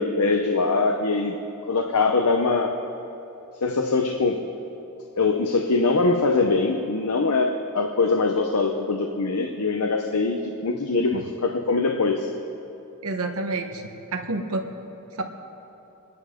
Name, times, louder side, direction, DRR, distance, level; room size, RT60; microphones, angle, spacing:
voice 1, 0.0-1.3 1.7-2.8 3.6-4.5 5.2-12.3, left 3 dB, 90° left, 4 dB, 0.8 m, -23 dB
voice 2, 13.0-13.8 14.1-14.7 15.2-15.3, right 2 dB, 80° right, 4 dB, 1.4 m, -28 dB
27.5 x 10.5 x 3.8 m, 2.9 s
head